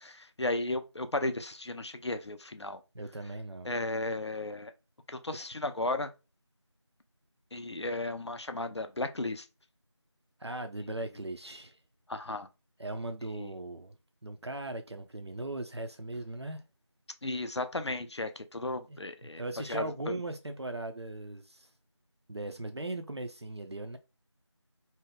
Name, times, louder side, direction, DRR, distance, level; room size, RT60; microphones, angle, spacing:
voice 1, 0.0-2.8 3.6-4.7 5.1-6.1 7.5-9.5 12.1-12.5 13.3-13.5 17.2-20.1, left 2 dB, 65° left, 0.4 m, -35 dB
voice 2, 2.9-3.7 5.3-5.4 10.4-11.8 12.8-14.0 14.2-16.6 18.9-19.0 19.4-21.7 22.3-24.0, right 2 dB, 65° right, 0.4 m, -39 dB
2.7 x 2.1 x 3.5 m
figure-of-eight pair, 180°, 15 cm